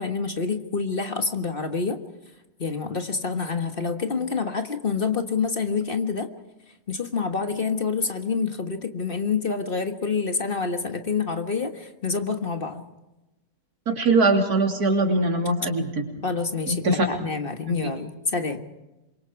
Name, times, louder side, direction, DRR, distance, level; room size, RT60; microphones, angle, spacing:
voice 1, 0.0-2.0 2.6-6.3 6.9-12.8 16.2-18.6, left 4 dB, 40° left, 7 dB, 1.6 m, -27 dB
voice 2, 13.9-16.1 16.7-17.1 17.8-17.9, right 2 dB, 85° right, 3 dB, 3.5 m, -22 dB
27.0 x 23.0 x 4.7 m, 1.0 s
omnidirectional pair, 1.6 m